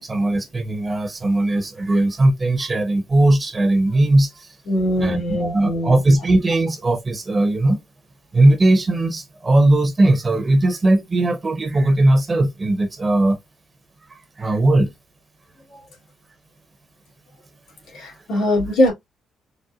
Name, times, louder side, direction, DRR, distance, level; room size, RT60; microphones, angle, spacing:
voice 1, 0.0-4.6 5.0-7.8 8.3-13.4 14.1-14.9, right 2 dB, 30° right, 0.8 m, -18 dB
voice 2, 4.7-6.0 15.7-15.8 17.9-18.9, left 1 dB, 85° left, 1.9 m, -21 dB
4.1 x 2.2 x 2.3 m
cardioid pair, 90°, 0 cm